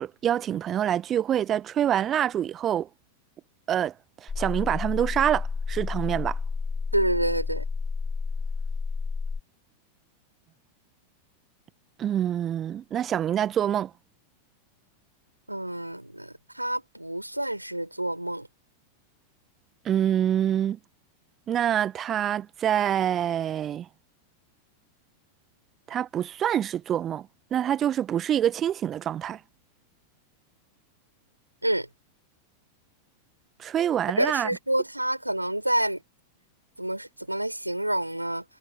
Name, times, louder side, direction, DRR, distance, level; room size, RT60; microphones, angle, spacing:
voice 1, 0.0-2.9 3.7-3.9 4.2-6.4 12.0-13.9 19.8-20.8 21.5-23.9 25.9-29.4 33.6-34.5, right 10 dB, 25° right, 1.5 m, -26 dB
sound 1, 4.3-9.4, left 4 dB, 15° left, 3.4 m, -30 dB
voice 2, 6.9-7.6 15.5-18.5 31.6-31.9 34.2-36.0 36.8-38.4, right 1 dB, 85° right, 4.8 m, -28 dB
figure-of-eight pair, 90°, 0 cm